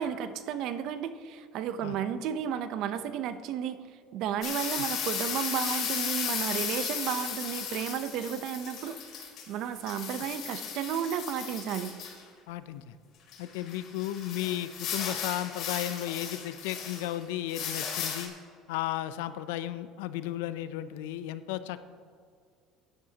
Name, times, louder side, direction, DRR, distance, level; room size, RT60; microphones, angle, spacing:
voice 1, 0.0-3.8 4.1-8.9 9.5-11.9, right 9 dB, 65° right, 11 dB, 0.7 m, -33 dB
sound 1, 4.4-9.5 9.8-12.2 13.3-17.2 17.5-18.3, left 7 dB, 60° left, 3.0 m, -35 dB
voice 2, 12.5-13.0 13.4-18.3 18.7-21.9, left 13 dB, 90° left, 13 dB, 0.5 m, -34 dB
16.0 x 10.5 x 2.9 m, 2.2 s
supercardioid pair, 105°, 0 cm